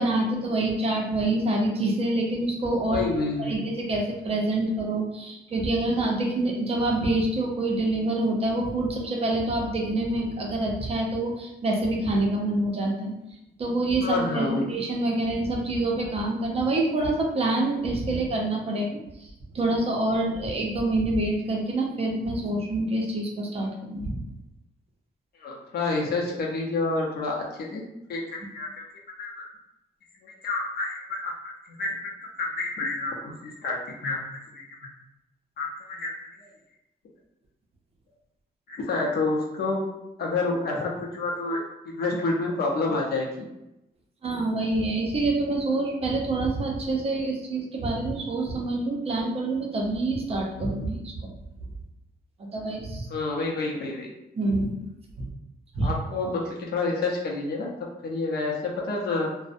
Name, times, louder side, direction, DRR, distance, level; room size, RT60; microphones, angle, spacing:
voice 1, 0.0-3.0 3.4-13.1 13.6-18.9 19.5-24.2 44.2-51.3 52.4-53.1 54.4-54.8 55.7-55.9, right 2 dB, 35° right, -1 dB, 0.5 m, -26 dB
voice 2, 2.9-3.6 14.0-14.7 25.4-27.8 28.1-28.7 29.2-29.5 30.4-31.5 31.8-32.1 32.4-34.2 34.5-34.6 35.6-36.1 38.7-39.8 40.2-43.5 53.1-54.1 55.8-57.7 58.0-59.3, left 3 dB, 70° left, -2 dB, 0.5 m, -28 dB
2.5 x 2.0 x 2.5 m, 0.88 s
wide cardioid pair, 170°, 17 cm